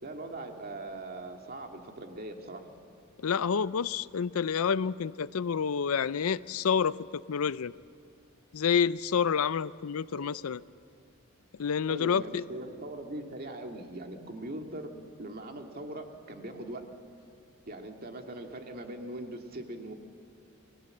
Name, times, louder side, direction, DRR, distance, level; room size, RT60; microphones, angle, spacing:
voice 1, 0.0-2.7 10.1-10.3 11.9-14.9 15.2-16.8 17.7-19.9, right 1 dB, 45° right, 3 dB, 2.3 m, -41 dB
voice 2, 3.2-7.7 8.5-10.6 11.6-12.4, left 6 dB, 80° left, 17 dB, 0.5 m, -28 dB
29.0 x 20.5 x 7.8 m, 2.4 s
head